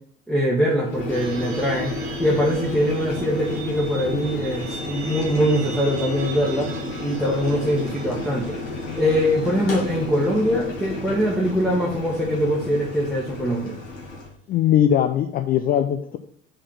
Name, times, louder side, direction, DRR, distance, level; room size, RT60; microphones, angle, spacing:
voice 1, 0.3-6.7 7.0-8.6 8.9-13.7, equal, ahead, -4 dB, 1.4 m, -22 dB
Boiling, 0.8-14.3, left 2 dB, 65° left, 2.3 m, -32 dB
sound 1, 1.1-13.6, right 4 dB, 70° right, 1.8 m, -42 dB
voice 2, 14.5-16.2, left 10 dB, 25° left, 8 dB, 0.3 m, -20 dB
5.0 x 4.2 x 6.0 m, 0.63 s
figure-of-eight pair, 65°, 39 cm